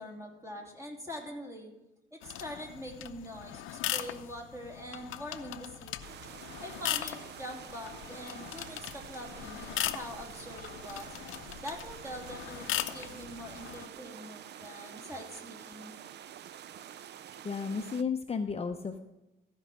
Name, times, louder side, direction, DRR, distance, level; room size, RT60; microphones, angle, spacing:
voice 1, 0.0-1.7 2.1-5.9 6.6-11.3 11.6-16.0, equal, 15° right, 1 dB, 2.9 m, -44 dB
sound 1, 2.2-13.9, left 13 dB, 85° left, 0.6 m, -39 dB
sound 2, 6.0-18.0, right 10 dB, 60° right, 0.5 m, -48 dB
voice 2, 17.4-19.0, left 5 dB, 30° left, 6 dB, 0.7 m, -33 dB
14.5 x 5.5 x 6.2 m, 0.98 s
cardioid pair, 90°, 20 cm